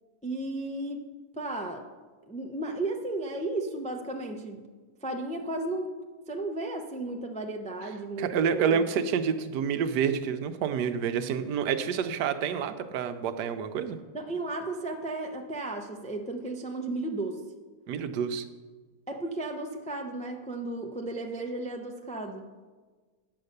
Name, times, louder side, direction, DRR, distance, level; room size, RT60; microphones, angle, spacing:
voice 1, 0.2-1.0 1.4-1.8 2.3-4.6 5.0-5.9 6.3-8.8 14.1-17.4 19.1-22.5, right 2 dB, 10° left, 2 dB, 0.4 m, -34 dB
voice 2, 8.2-14.0 17.9-18.4, right 7 dB, 80° right, 9 dB, 1.3 m, -28 dB
9.6 x 6.8 x 6.5 m, 1.4 s
omnidirectional pair, 1.8 m